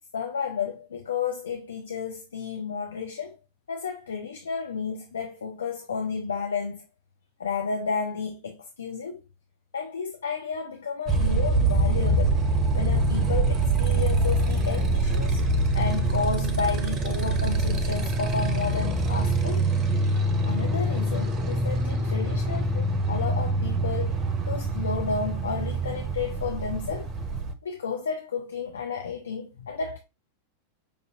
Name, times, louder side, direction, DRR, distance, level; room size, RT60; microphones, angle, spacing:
voice 1, 0.1-3.3 3.7-6.8 7.4-9.2 9.7-12.3 12.7-15.4 15.7-19.6 20.5-24.2 24.5-27.1 27.6-30.0, left 5 dB, 70° left, 0.5 m, -32 dB
Motorcycle, 11.1-27.5, right 2 dB, 25° right, 0.6 m, -25 dB
5.2 x 2.7 x 2.6 m
figure-of-eight pair, 90°, 0 cm